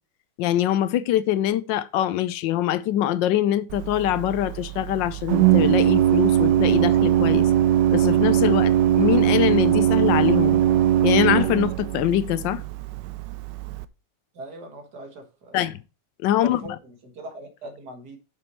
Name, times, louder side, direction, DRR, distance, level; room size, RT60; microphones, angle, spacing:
voice 1, 0.4-7.5 7.9-10.6 11.0-12.6 15.5-15.8 16.2-16.6, left 12 dB, 85° left, 1.3 m, -23 dB
Organ, 3.7-13.8, right 12 dB, 80° right, 1.2 m, -20 dB
voice 2, 14.3-15.7 16.4-18.2, right 1 dB, 60° right, 2.2 m, -40 dB
7.0 x 6.0 x 4.4 m
omnidirectional pair, 2.0 m